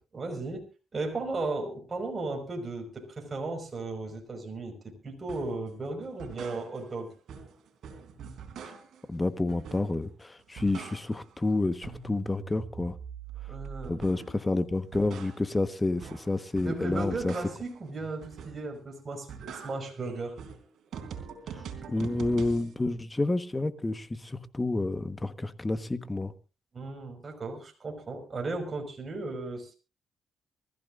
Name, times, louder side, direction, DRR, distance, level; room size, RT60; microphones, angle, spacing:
voice 1, 0.1-0.6 0.9-7.1 13.5-14.3 16.6-20.4 26.7-29.7, right 3 dB, 30° right, 5.3 m, -36 dB
sound 1, 5.3-5.6 6.0-7.0 7.3-9.1 9.5-10.1 10.4-11.4 11.6-14.4 14.7-17.8 18.2-18.8 19.1-22.7, right 6 dB, 65° right, 3.7 m, -43 dB
voice 2, 9.1-12.9 13.9-17.3 21.5-21.6 21.9-26.3, left 2 dB, 15° left, 1.3 m, -29 dB
24.5 x 14.5 x 2.6 m
cardioid pair, 90°, 0 cm